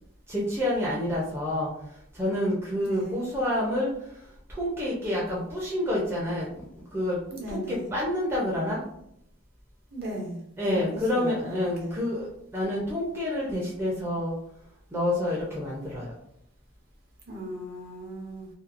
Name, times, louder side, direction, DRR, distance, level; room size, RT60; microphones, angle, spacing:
voice 1, 0.3-1.7 2.2-3.9 4.6-6.5 6.9-7.2 7.5-8.8 10.6-12.3 12.5-14.3 14.9-16.1, left 1 dB, 10° right, -5 dB, 0.5 m, -28 dB
voice 2, 2.8-3.3 7.3-7.9 9.9-10.4 10.7-12.0 17.3-18.5, right 1 dB, 50° right, -2 dB, 0.7 m, -37 dB
2.7 x 2.2 x 2.5 m, 0.73 s
head